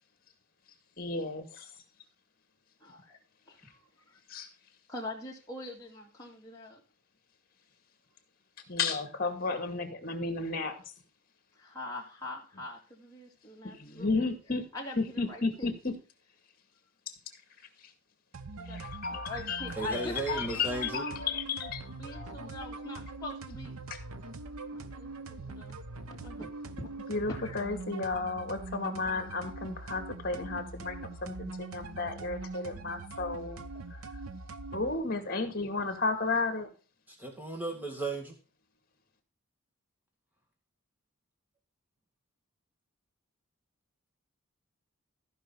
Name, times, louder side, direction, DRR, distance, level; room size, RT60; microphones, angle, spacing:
voice 1, 1.0-1.7 4.3-4.5 8.7-10.8 13.6-14.6 15.0-15.9 18.6-19.7 20.3-21.8 22.1-22.5 27.1-33.6 33.9-34.0 34.7-36.7, left 3 dB, 40° left, 8 dB, 2.1 m, -33 dB
voice 2, 2.8-3.2 3.5-3.8 4.1-4.2 4.9-6.8 11.5-14.3 14.7-15.7 18.6-21.1 22.0-23.7 24.7-26.9 27.4-27.6, left 2 dB, 15° left, -3 dB, 2.6 m, -43 dB
sound 1, 18.3-35.0, right 3 dB, 80° right, 0.9 m, -43 dB
voice 3, 19.8-21.1 37.1-38.4, right 2 dB, 10° right, 2 dB, 2.1 m, -35 dB
14.0 x 5.5 x 5.6 m, 0.35 s
head